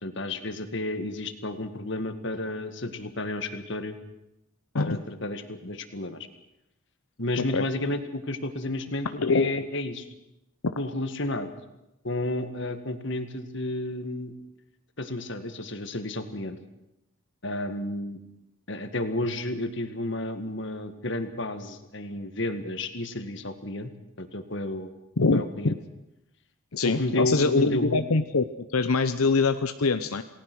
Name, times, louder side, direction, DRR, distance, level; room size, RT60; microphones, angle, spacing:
voice 1, 0.0-4.0 4.8-6.2 7.2-10.1 10.8-11.5 12.0-14.3 15.0-16.6 17.4-18.2 18.7-23.9 24.2-24.9 25.3-25.8 26.8-28.0, left 1 dB, 55° left, 8 dB, 1.9 m, -32 dB
voice 2, 9.2-9.7 10.6-10.7 25.2-25.8 26.7-28.4 28.7-30.2, left 3 dB, 85° left, 9 dB, 0.9 m, -24 dB
28.5 x 18.5 x 6.3 m, 0.88 s
head